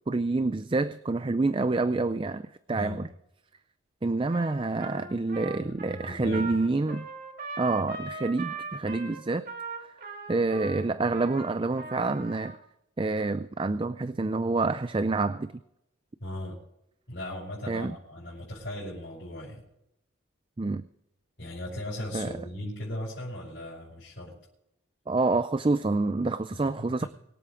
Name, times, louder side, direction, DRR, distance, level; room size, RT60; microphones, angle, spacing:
voice 1, 0.1-3.1 4.0-7.1 7.6-9.5 9.8-9.9 10.3-12.6 13.0-15.5 17.7-17.9 20.6-20.8 22.1-22.3 25.1-27.0, right 3 dB, 25° right, 13 dB, 0.4 m, -27 dB
voice 2, 2.7-3.1 5.6-6.6 16.2-16.6 17.1-19.6 21.4-24.4 26.5-27.1, left 1 dB, 60° left, -7 dB, 5.8 m, -38 dB
Trumpet, 4.3-12.6, right 4 dB, 45° right, 2.3 m, -40 dB
23.5 x 8.4 x 5.1 m, 0.81 s
head